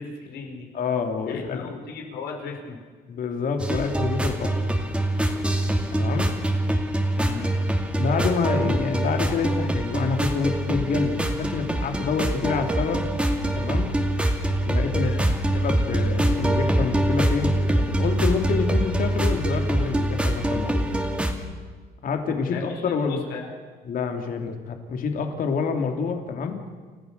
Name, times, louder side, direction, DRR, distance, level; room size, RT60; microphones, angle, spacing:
voice 1, 0.0-0.7 1.3-2.8 7.2-7.5 15.0-15.2 22.4-22.6 23.0-23.5, left 5 dB, 75° left, 2 dB, 5.1 m, -36 dB
voice 2, 0.7-1.7 3.1-4.5 6.0-6.3 8.0-13.1 13.5-13.9 14.7-15.1 15.5-20.9 22.0-23.3 23.8-26.6, left 5 dB, 55° left, 4 dB, 3.1 m, -27 dB
sound 1, 3.6-21.3, right 1 dB, 5° right, 2.6 m, -24 dB
29.5 x 14.5 x 6.8 m, 1.5 s
cardioid pair, 110°, 17 cm